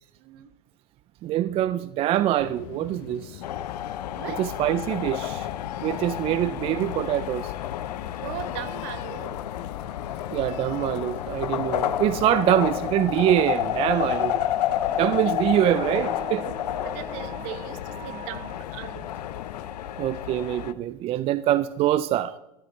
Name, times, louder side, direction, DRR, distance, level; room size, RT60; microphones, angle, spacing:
voice 1, 0.0-0.5 4.2-4.5 8.2-9.4 14.9-15.3 16.8-19.1, right 12 dB, 50° right, 1.1 m, -39 dB
voice 2, 1.2-3.4 4.4-5.5 5.8-7.5 10.3-14.4 14.8-17.6 17.9-18.5 20.0-22.4, right 12 dB, 30° right, 0.4 m, -25 dB
sound 1, 2.4-19.7, left 17 dB, 50° left, 0.5 m, -42 dB
sound 2, 3.4-20.7, left 11 dB, 80° left, 0.7 m, -30 dB
14.5 x 13.5 x 3.1 m
hypercardioid pair, 115°, 20 cm